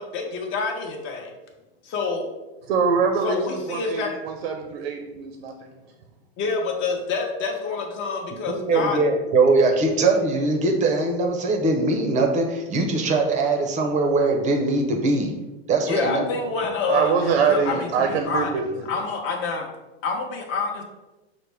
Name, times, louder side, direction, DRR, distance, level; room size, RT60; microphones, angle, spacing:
voice 1, 0.0-1.3 1.8-2.3 3.2-4.2 6.4-9.0 15.9-18.5 18.9-19.7 20.0-20.8, left 4 dB, 40° left, 2 dB, 0.8 m, -27 dB
voice 2, 2.7-5.8 16.9-18.9, right 5 dB, 85° right, 4 dB, 0.6 m, -24 dB
voice 3, 8.5-15.3 15.7-16.2, right 3 dB, 25° right, 3 dB, 0.6 m, -21 dB
5.8 x 2.1 x 3.3 m, 1.1 s
supercardioid pair, 130°, 31 cm